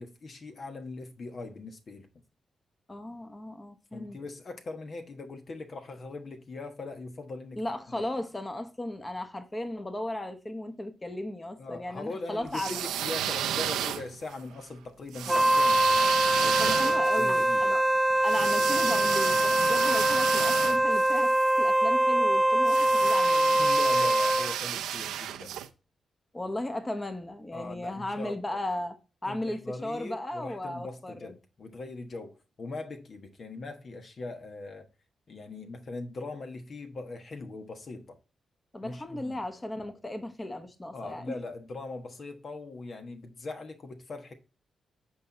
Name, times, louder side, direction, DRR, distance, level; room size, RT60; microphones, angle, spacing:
voice 1, 0.0-2.1 3.9-7.6 8.0-8.1 11.6-16.1 16.4-17.8 23.5-25.5 27.5-28.6 29.2-34.9 35.3-38.2 38.8-39.4 40.9-44.3, left 3 dB, 55° left, 1.2 m, -41 dB
voice 2, 2.9-4.2 7.6-12.8 16.6-17.8 18.2-23.6 26.3-29.0 29.2-31.3 38.7-41.3, left 1 dB, 25° left, 1.2 m, -36 dB
sound 1, 12.5-14.4 15.1-21.5 22.6-25.7, right 10 dB, 85° right, 0.5 m, -32 dB
Wind instrument woodwind instrument, 15.3-24.6, right 1 dB, 10° right, 0.4 m, -23 dB
8.1 x 4.4 x 4.0 m
supercardioid pair, 50°, 0 cm